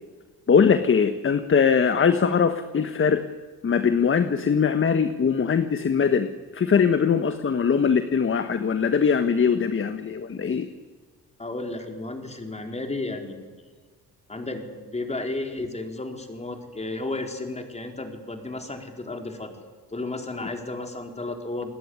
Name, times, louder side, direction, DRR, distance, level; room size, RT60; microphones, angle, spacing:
voice 1, 0.5-3.3 3.6-10.7 20.4-20.5, left 6 dB, 30° left, 10 dB, 1.4 m, -21 dB
voice 2, 11.4-13.3 14.3-19.6 19.9-21.7, left 2 dB, 15° left, 4 dB, 4.5 m, -33 dB
29.0 x 20.5 x 9.8 m, 1.5 s
cardioid pair, 110°, 38 cm